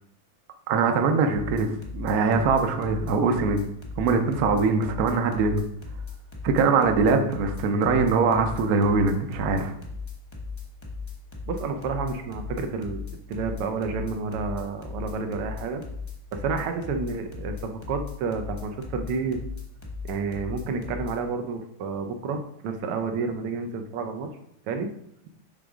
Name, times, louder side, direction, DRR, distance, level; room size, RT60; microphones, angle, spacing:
voice 1, 0.7-3.6 4.0-5.6 6.4-9.7, right 4 dB, 65° right, 5 dB, 0.9 m, -22 dB
sound 1, 1.3-21.1, left 5 dB, 45° left, 0.3 m, -36 dB
voice 2, 11.5-13.0 13.3-15.8 16.3-19.4 20.0-24.3 24.7-24.9, right 4 dB, 90° right, 5 dB, 1.7 m, -30 dB
6.6 x 3.5 x 5.0 m, 0.75 s
omnidirectional pair, 2.4 m